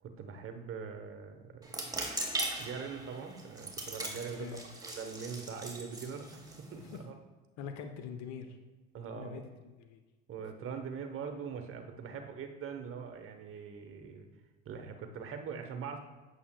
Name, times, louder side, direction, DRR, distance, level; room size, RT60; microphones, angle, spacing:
voice 1, 0.0-2.1 2.6-6.4 6.7-7.2 8.9-9.4 10.3-14.3 14.7-16.0, right 6 dB, 40° right, 6 dB, 0.9 m, -42 dB
sound 1, 1.6-7.0, right 2 dB, 10° right, 1.4 m, -40 dB
voice 2, 7.6-8.5 9.2-10.0, left 7 dB, 55° left, 6 dB, 0.8 m, -43 dB
8.3 x 7.4 x 2.2 m, 1.3 s
hypercardioid pair, 75°, 34 cm